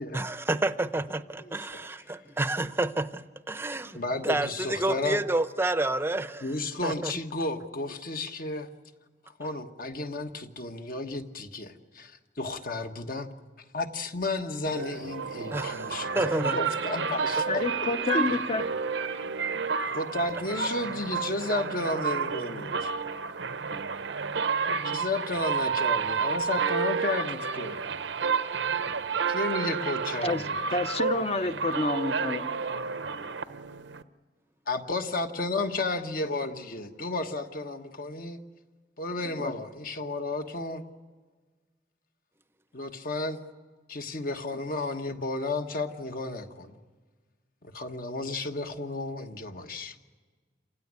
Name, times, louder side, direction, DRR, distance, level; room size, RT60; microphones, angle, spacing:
voice 1, 0.1-6.5 6.8-7.1 15.5-16.6, right 2 dB, 15° right, 0.7 m, -29 dB
voice 2, 1.4-1.9 3.9-5.2 6.4-8.7 9.4-13.3 13.7-17.6 18.1-18.3 18.5-18.7 19.9-22.9 24.8-27.8 29.3-30.6 34.7-38.4 39.0-40.8 42.7-43.4 43.9-46.7 47.6-50.0, left 2 dB, 50° left, 1.3 m, -33 dB
sound 1, 14.7-34.0, right 5 dB, 85° right, 0.8 m, -30 dB
voice 3, 17.5-18.6 30.2-30.4 30.7-32.5 39.4-39.5, left 3 dB, 35° left, 0.8 m, -29 dB
28.0 x 16.0 x 9.6 m
head